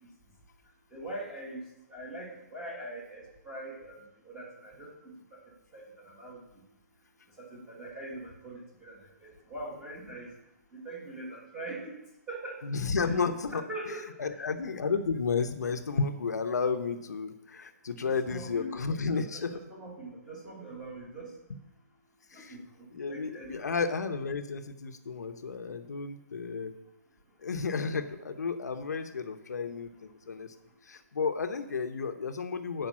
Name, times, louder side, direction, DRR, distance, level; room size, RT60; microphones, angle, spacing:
voice 1, 0.9-1.6 1.9-4.9 5.7-6.4 7.4-10.3 10.7-12.0 12.3-12.6 13.0-13.1 13.5-14.4 18.0-18.7 19.1-21.3 22.3-22.6 23.1-23.8, right 1 dB, 5° right, -4 dB, 1.4 m, -42 dB
voice 2, 12.6-13.7 14.2-19.6 22.3-22.6 22.9-26.7 27.4-30.5 30.8-32.9, left 5 dB, 75° left, 7 dB, 0.8 m, -32 dB
7.5 x 5.2 x 7.2 m, 0.89 s
hypercardioid pair, 175°, 9 cm